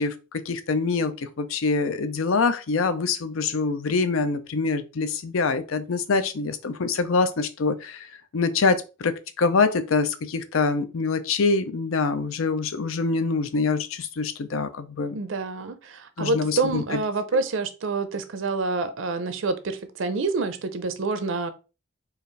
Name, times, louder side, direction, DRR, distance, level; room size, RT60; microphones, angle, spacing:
voice 1, 0.0-8.1 8.3-15.2 16.2-17.0, left 4 dB, 80° left, 0.5 m, -25 dB
voice 2, 15.1-21.5, right 3 dB, 65° right, 0.6 m, -27 dB
4.7 x 2.5 x 3.2 m
head